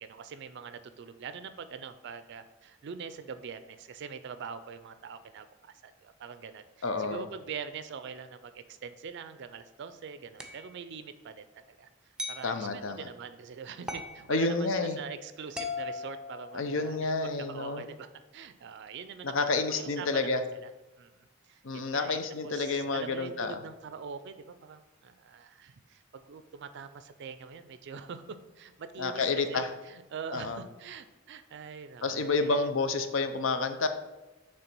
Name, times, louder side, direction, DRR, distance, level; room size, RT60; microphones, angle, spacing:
voice 1, 0.0-20.7 21.0-21.1 21.4-32.7, right 6 dB, 60° right, 11 dB, 0.4 m, -44 dB
voice 2, 6.8-7.3 12.4-13.1 14.3-15.0 16.5-17.8 19.2-20.4 21.6-23.6 29.0-29.7 30.3-30.6 32.0-33.9, left 3 dB, 70° left, 9 dB, 0.6 m, -29 dB
sound 1, 10.4-10.7 12.2-12.5 13.9-14.2 15.6-17.0, left 3 dB, 5° right, 0.6 m, -38 dB
6.8 x 3.3 x 5.9 m, 1.1 s
head